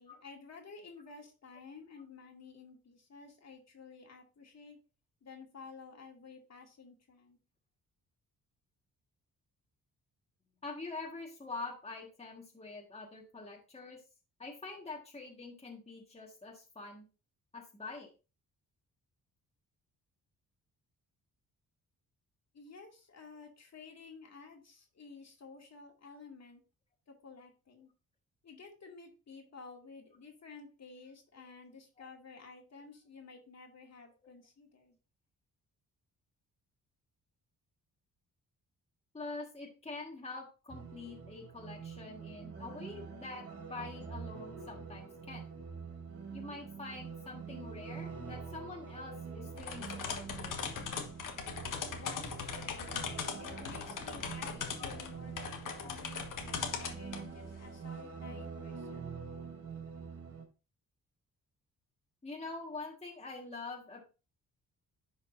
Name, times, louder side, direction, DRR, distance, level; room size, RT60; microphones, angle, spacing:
voice 1, 0.0-4.8 5.2-7.4 22.5-26.6 27.1-27.9 28.4-35.0 51.9-52.9 53.4-59.1, left 4 dB, 50° left, 1 dB, 2.3 m, -52 dB
voice 2, 10.6-14.0 14.4-17.1 17.5-18.1 31.4-31.5 32.0-32.1 34.2-34.3 39.1-45.5 46.3-50.6 54.8-54.9 55.6-56.0 62.2-64.0, left 3 dB, 20° left, 0 dB, 1.7 m, -45 dB
sound 1, 40.7-60.4, right 5 dB, 45° right, 2.4 m, -46 dB
sound 2, 49.6-57.3, left 6 dB, 65° left, 1.4 m, -40 dB
10.5 x 5.2 x 2.7 m, 0.32 s
cardioid pair, 95°, 34 cm